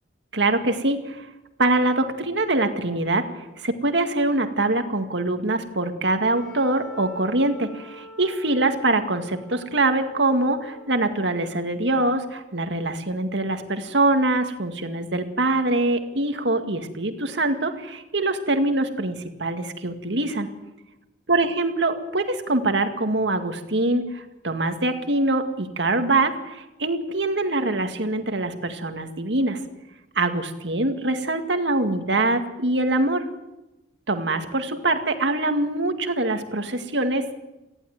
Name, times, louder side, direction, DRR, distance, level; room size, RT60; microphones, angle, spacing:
voice 1, 0.3-1.3 1.6-20.5 21.3-29.6 30.2-33.2 34.1-37.4, right 2 dB, 75° right, 6 dB, 2.1 m, -24 dB
Wind instrument woodwind instrument, 6.3-11.4, equal, 5° left, 4.4 m, -45 dB
19.0 x 14.5 x 9.4 m, 0.97 s
head